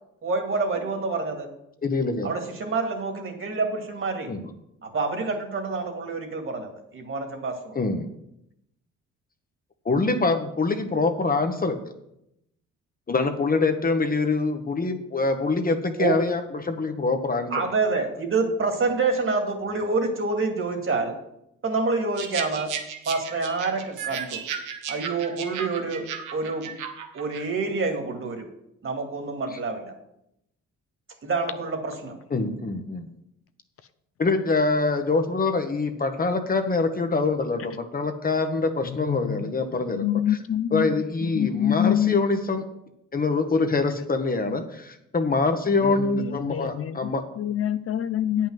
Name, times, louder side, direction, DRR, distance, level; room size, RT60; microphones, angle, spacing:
voice 1, 0.2-1.5 2.2-4.3 4.8-7.8 16.0-16.2 17.5-21.1 21.6-22.7 23.1-24.4 24.9-26.1 26.3-26.7 27.1-28.5 28.8-29.9 31.2-32.2, right 3 dB, 45° right, 4 dB, 2.3 m, -27 dB
voice 2, 1.8-2.3 4.3-4.4 7.7-8.1 9.8-11.9 13.1-17.5 29.5-29.6 32.3-33.1 34.2-40.4 40.7-42.6 43.1-47.2, left 3 dB, 30° left, 7 dB, 1.1 m, -25 dB
sound 1, 22.2-27.4, right 7 dB, 85° right, 1.4 m, -35 dB
voice 3, 39.9-40.9 41.4-42.2 46.5-47.0 47.4-48.5, left 11 dB, 50° left, 11 dB, 0.6 m, -25 dB
9.0 x 5.7 x 7.5 m, 0.81 s
cardioid pair, 90°, 30 cm